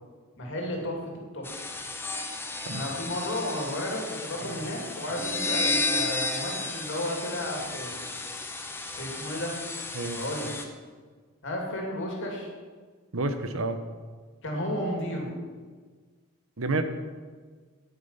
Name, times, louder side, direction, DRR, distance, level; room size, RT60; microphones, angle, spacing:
voice 1, 0.4-1.5 2.7-8.1 9.0-9.6 10.1-10.5 11.4-12.5 14.4-15.3, left 1 dB, 55° left, 0 dB, 2.8 m, -33 dB
sound 1, 1.4-10.6, left 3 dB, 10° left, 0.8 m, -33 dB
voice 2, 13.1-13.8 16.6-16.8, right 2 dB, 65° right, 9 dB, 0.9 m, -29 dB
9.9 x 9.4 x 5.7 m, 1.5 s
head